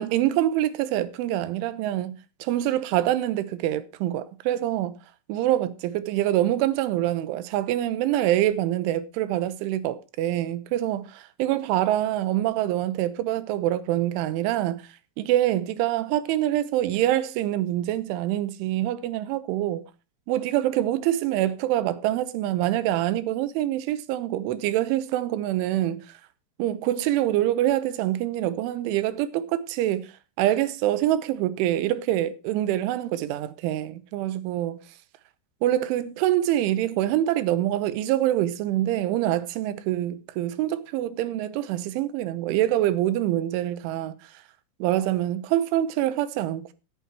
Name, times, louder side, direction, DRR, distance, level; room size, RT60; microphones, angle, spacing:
voice 1, 0.0-4.9 5.3-14.8 15.2-19.8 20.3-26.0 26.6-30.1 30.4-34.8 35.6-44.3 44.8-46.7, right 13 dB, 85° right, 3.3 m, -25 dB
16.5 x 9.4 x 3.0 m
omnidirectional pair, 5.6 m